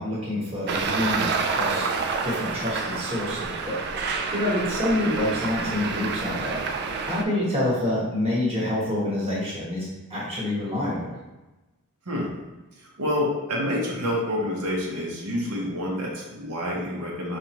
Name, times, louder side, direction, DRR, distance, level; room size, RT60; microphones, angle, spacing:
voice 1, 0.0-1.9 2.2-3.8 4.3-11.1, left 1 dB, 25° right, -6 dB, 1.1 m, -27 dB
Traffic noise roadway noise, 0.7-7.2, right 4 dB, 45° right, 0.3 m, -28 dB
voice 2, 13.0-17.4, left 1 dB, 85° right, -3 dB, 0.9 m, -28 dB
4.8 x 2.5 x 2.9 m, 1.1 s
head